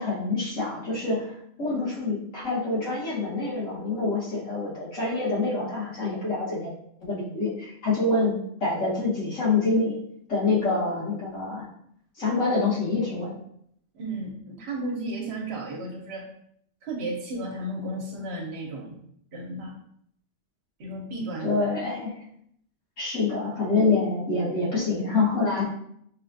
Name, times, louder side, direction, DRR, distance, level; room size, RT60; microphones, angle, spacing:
voice 1, 0.0-1.3 1.6-6.7 7.0-10.0 10.3-11.7 12.2-13.3 21.4-22.1 23.0-25.7, left 3 dB, 90° left, -7 dB, 1.8 m, -26 dB
voice 2, 13.9-16.3 16.8-19.0 19.3-19.8 20.8-21.5, right 1 dB, 60° right, 0 dB, 1.0 m, -33 dB
5.3 x 2.4 x 2.6 m, 0.70 s
omnidirectional pair, 1.3 m